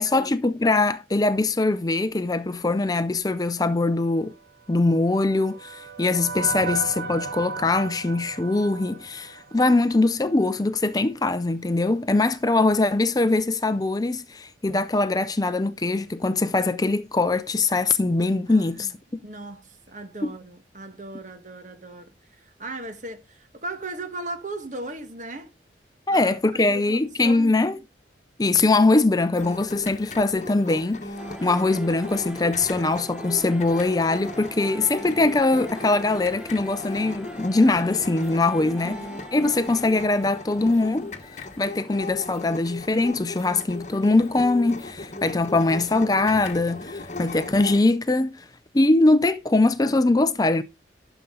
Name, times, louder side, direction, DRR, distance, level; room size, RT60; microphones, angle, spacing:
voice 1, 0.0-4.3 4.7-19.2 26.1-27.8 28.4-31.0 31.4-39.0 39.3-41.1 41.6-48.5 48.7-50.6, left 2 dB, 20° left, 0.5 m, -22 dB
sound 1, 4.7-10.1, right 4 dB, 60° right, 1.3 m, -35 dB
voice 2, 18.5-18.9 19.2-22.1 22.4-25.5 26.1-27.6 38.6-39.2, right 2 dB, 40° right, 1.5 m, -37 dB
sound 2, 29.3-47.8, left 2 dB, 40° left, 1.3 m, -38 dB
sound 3, 31.2-42.1, right 1 dB, 5° right, 1.1 m, -42 dB
12.0 x 6.9 x 3.8 m
head